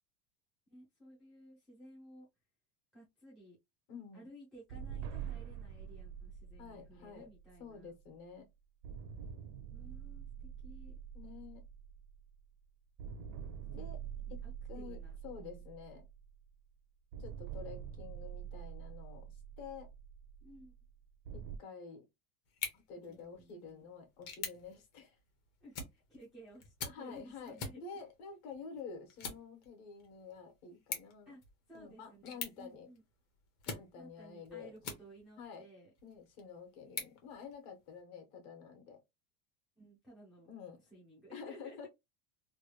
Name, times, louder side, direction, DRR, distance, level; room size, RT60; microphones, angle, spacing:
voice 1, 0.7-2.3 2.9-3.6 4.1-7.9 9.7-10.3 10.6-10.9 13.7-13.9 14.4-15.7 20.4-20.7 23.1-23.8 25.6-27.8 31.3-31.4 31.7-33.0 34.0-35.9 39.8-40.5 40.8-41.9, right 1 dB, ahead, 0.3 m, -56 dB
voice 2, 3.9-4.3 6.6-7.3 7.6-8.5 11.1-11.6 13.7-14.0 14.3-15.0 15.2-16.1 17.2-19.9 21.3-22.0 22.7-25.2 26.9-31.3 31.7-32.9 33.7-34.7 35.4-35.6 36.0-39.0 40.5-40.8 41.3-41.9, left 5 dB, 50° left, 1.2 m, -49 dB
sound 1, 4.7-8.3 8.8-12.6 13.0-16.6 17.1-21.6, right 8 dB, 60° right, 0.6 m, -46 dB
sound 2, 22.5-35.5 36.0-38.0, left 5 dB, 35° left, 0.8 m, -48 dB
3.1 x 2.3 x 2.9 m
cardioid pair, 175°, 44 cm